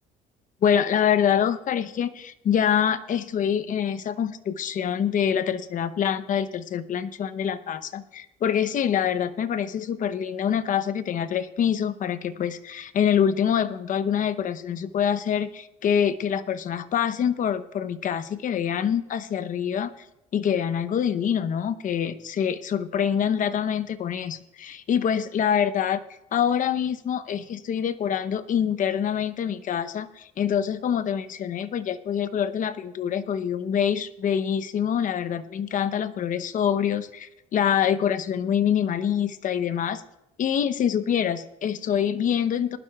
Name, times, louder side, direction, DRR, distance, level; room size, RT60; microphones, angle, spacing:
voice 1, 0.6-19.9 20.3-26.0 26.3-40.0 40.4-42.8, left 8 dB, 50° left, 12 dB, 0.8 m, -25 dB
20.0 x 11.5 x 2.4 m, 0.87 s
cardioid pair, 110°, 17 cm